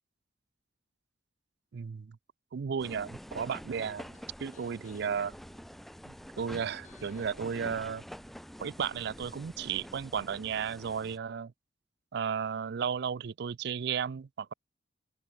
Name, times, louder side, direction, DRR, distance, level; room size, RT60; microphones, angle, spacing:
voice 1, 1.7-2.2 2.5-5.4 6.0-8.0 8.6-11.5 12.1-14.5, right 7 dB, 60° right, 0.4 m, -34 dB
sound 1, 2.8-11.2, equal, ahead, 0.5 m, -47 dB
sound 2, 4.1-6.4 6.8-10.6 10.9-11.0, left 3 dB, 40° left, 2.1 m, -63 dB
open air
head